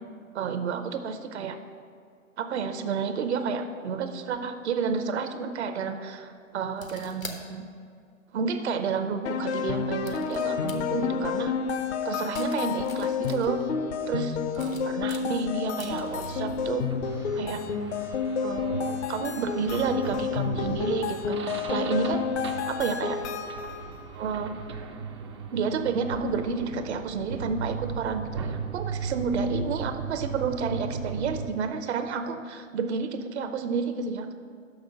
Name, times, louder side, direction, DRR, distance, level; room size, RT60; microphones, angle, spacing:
voice 1, 0.3-1.6 2.4-7.7 8.3-11.5 12.0-13.6 14.1-16.9 17.3-17.7 18.4-21.4 21.7-22.3 22.7-23.2 24.2-24.5 25.5-34.3, right 5 dB, 55° right, 7 dB, 0.7 m, -30 dB
sound 1, 6.7-7.4 8.5-8.6 10.0-10.7 12.3-13.7 14.4-16.3, left 4 dB, 85° left, 1.2 m, -44 dB
sound 2, 9.2-23.9, left 6 dB, 55° left, 0.7 m, -30 dB
sound 3, 15.8-31.5, right 5 dB, 25° right, 0.3 m, -37 dB
6.1 x 6.0 x 6.5 m, 2.3 s
figure-of-eight pair, 115°, 39 cm